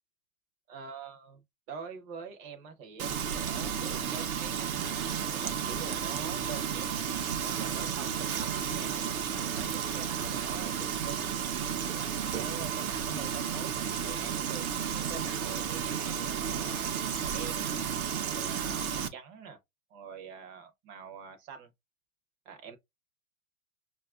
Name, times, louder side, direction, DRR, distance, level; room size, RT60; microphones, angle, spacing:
voice 1, 0.7-1.4 1.7-7.1 7.4-11.3 11.9-16.9 17.2-17.7 18.3-19.6 19.9-21.7 22.5-22.8, right 6 dB, 20° right, 0.4 m, -45 dB
Frying (food), 3.0-19.1, right 8 dB, 85° right, 0.7 m, -32 dB
5.5 x 2.3 x 2.3 m
hypercardioid pair, 130°, 41 cm